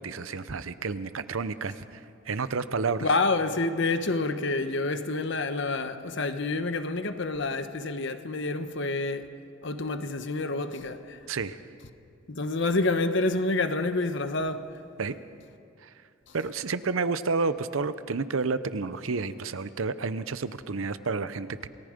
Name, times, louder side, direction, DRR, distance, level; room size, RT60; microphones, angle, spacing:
voice 1, 0.0-1.8 2.3-3.1 11.3-11.6 15.0-15.2 15.8-15.9 16.3-21.7, right 4 dB, 85° right, 0.8 m, -30 dB
voice 2, 3.0-9.3 9.6-11.2 12.3-14.8 16.3-16.4, left 3 dB, 60° left, 1.1 m, -28 dB
28.0 x 18.0 x 5.2 m
head